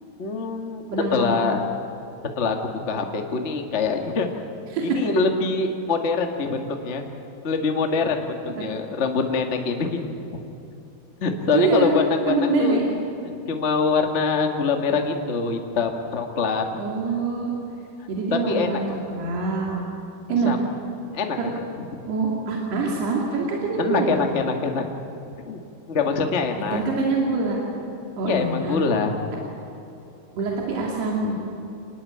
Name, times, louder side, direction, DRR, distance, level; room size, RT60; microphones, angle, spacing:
voice 1, 0.2-0.8 1.1-1.6 2.3-4.3 4.8-7.0 7.4-10.0 11.2-12.8 13.5-16.6 18.3-18.7 20.4-20.6 21.1-21.4 23.8-24.8 25.5-25.6 25.9-26.8 28.2-29.1, left 4 dB, 40° left, 3 dB, 1.0 m, -24 dB
voice 2, 0.9-1.3 4.7-5.0 8.6-8.8 11.5-12.0 12.2-12.9 16.8-17.5 18.1-19.9 20.3-20.5 21.4-21.5 22.1-24.2 26.7-27.6 28.2-28.8 30.3-31.3, right 3 dB, 80° right, -2 dB, 4.6 m, -24 dB
26.5 x 20.0 x 8.7 m, 2.8 s
omnidirectional pair, 4.6 m